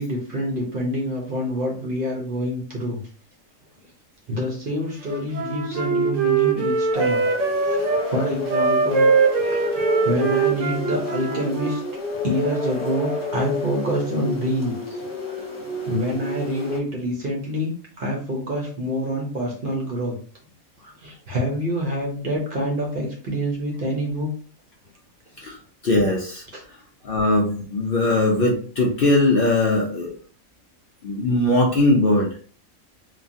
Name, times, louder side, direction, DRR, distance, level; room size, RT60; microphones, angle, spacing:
voice 1, 0.0-3.0 4.3-7.2 7.6-9.1 9.4-11.8 12.2-15.5 15.9-20.1 20.8-24.3 26.5-26.6, equal, 50° right, -1 dB, 0.8 m, -27 dB
Wind instrument woodwind instrument, 5.1-8.0 8.5-11.9, right 5 dB, 70° right, 1.0 m, -22 dB
sound 1, 6.9-16.8, left 2 dB, 25° left, 1.0 m, -30 dB
voice 2, 25.8-26.4 27.0-30.1 31.0-32.3, left 2 dB, 60° left, -2 dB, 0.6 m, -20 dB
3.0 x 2.1 x 2.6 m, 0.43 s
omnidirectional pair, 1.4 m